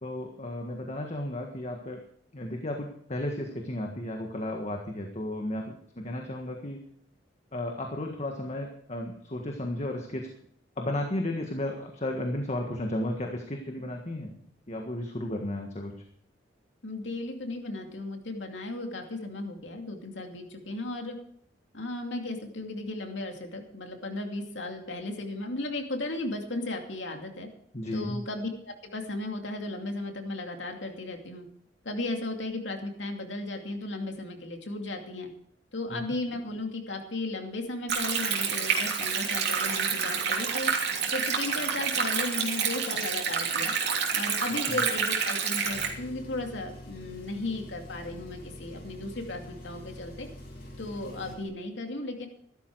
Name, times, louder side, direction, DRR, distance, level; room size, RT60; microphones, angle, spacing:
voice 1, 0.0-2.0 2.3-6.8 7.5-10.3 10.8-14.4 14.7-15.9 27.7-28.2 35.9-36.0 44.7-44.8, left 1 dB, 40° left, 2 dB, 1.6 m, -34 dB
voice 2, 16.8-21.2 21.7-27.5 27.9-31.5 31.8-35.3 35.7-40.7 41.1-43.7 44.1-50.3 50.8-52.3, left 2 dB, 80° left, 3 dB, 2.6 m, -35 dB
Stream, 37.9-45.9, right 6 dB, 65° right, 3.1 m, -28 dB
Engine, 45.6-51.5, left 1 dB, 55° left, 6.1 m, -45 dB
15.0 x 12.5 x 4.7 m, 0.66 s
head